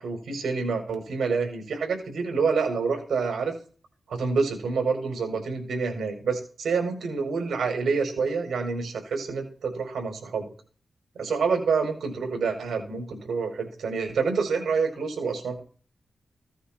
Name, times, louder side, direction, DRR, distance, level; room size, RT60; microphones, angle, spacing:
voice 1, 0.0-3.5 4.1-10.5 11.2-15.6, right 5 dB, 85° right, 3 dB, 5.2 m, -27 dB
16.5 x 9.2 x 4.5 m, 0.40 s
wide cardioid pair, 110°, 0 cm